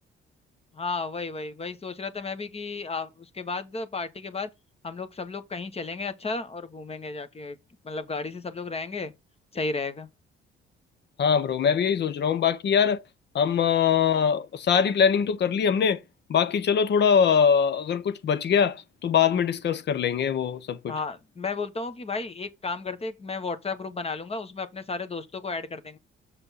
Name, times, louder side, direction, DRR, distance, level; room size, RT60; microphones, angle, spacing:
voice 1, 0.7-4.5 4.8-7.6 7.8-9.1 9.5-10.1 20.9-26.0, left 4 dB, 30° left, 1.4 m, -33 dB
voice 2, 11.2-13.0 13.3-16.0 16.3-20.9, left 7 dB, 60° left, 1.0 m, -22 dB
7.0 x 5.3 x 4.2 m
cardioid pair, 90°, 20 cm